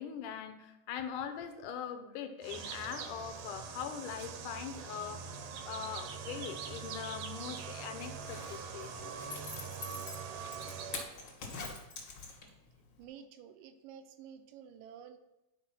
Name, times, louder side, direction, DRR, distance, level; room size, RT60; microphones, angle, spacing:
voice 1, 0.0-5.2 5.6-9.1, left 8 dB, 80° left, 8 dB, 2.1 m, -42 dB
sound 1, 2.4-11.0, right 6 dB, 70° right, 1.8 m, -43 dB
Zipper (clothing), 8.1-12.7 13.0-13.1, left 4 dB, 45° left, 1.8 m, -45 dB
voice 2, 13.0-15.2, right 8 dB, 85° right, 9 dB, 2.4 m, -51 dB
10.0 x 4.8 x 5.9 m, 0.94 s
omnidirectional pair, 3.9 m